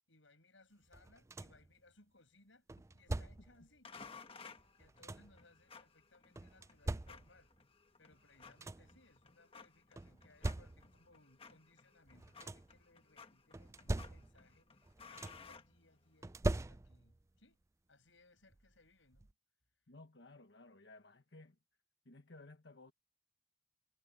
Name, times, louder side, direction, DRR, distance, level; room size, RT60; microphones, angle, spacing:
voice 1, 0.1-2.7 2.9-3.9 4.8-7.5 8.0-17.6 17.9-19.3, left 2 dB, 80° left, 7.9 m, -67 dB
sound 1, 0.9-1.7 2.7-3.6 4.6-5.4 6.4-7.6 8.1-8.2 8.4-9.0 10.0-11.1 12.1-12.8 13.5-14.6 14.8-15.6 16.2-17.2 18.5-18.6 19.1-19.3, right 2 dB, 15° right, 0.4 m, -42 dB
sound 2, 3.8-16.3, left 5 dB, 30° left, 1.3 m, -58 dB
voice 2, 19.9-21.6 22.0-22.9, left 2 dB, 65° left, 1.4 m, -57 dB
head